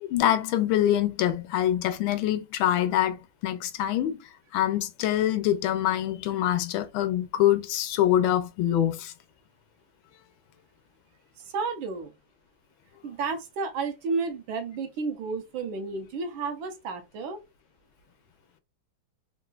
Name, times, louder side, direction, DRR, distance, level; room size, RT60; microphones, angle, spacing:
voice 1, 0.0-9.1, left 12 dB, 85° left, 1.3 m, -25 dB
voice 2, 11.4-12.1 13.0-17.4, right 4 dB, 80° right, 1.5 m, -32 dB
3.7 x 2.4 x 2.3 m
omnidirectional pair, 2.2 m